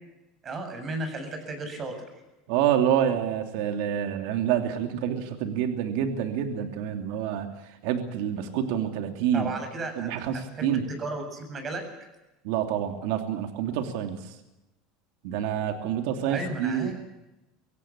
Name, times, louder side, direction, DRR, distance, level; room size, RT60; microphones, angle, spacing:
voice 1, 0.4-2.1 9.3-11.8 16.3-16.9, right 2 dB, 30° right, 6 dB, 7.5 m, -34 dB
voice 2, 2.5-7.5 7.8-9.5 10.0-10.8 12.4-14.2 15.2-16.9, right 9 dB, 75° right, 6 dB, 2.8 m, -27 dB
24.5 x 16.5 x 8.8 m, 1.0 s
supercardioid pair, 130°, 0 cm